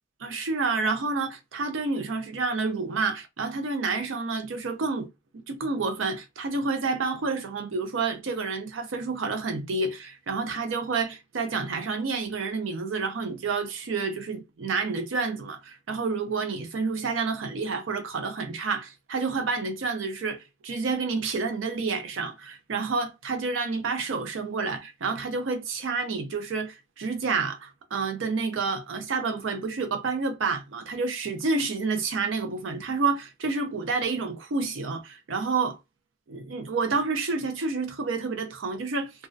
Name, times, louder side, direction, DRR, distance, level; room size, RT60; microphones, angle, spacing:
voice 1, 0.2-5.1 5.3-35.8 36.3-39.1, right 4 dB, 85° right, 0.5 m, -29 dB
2.3 x 2.1 x 2.5 m
head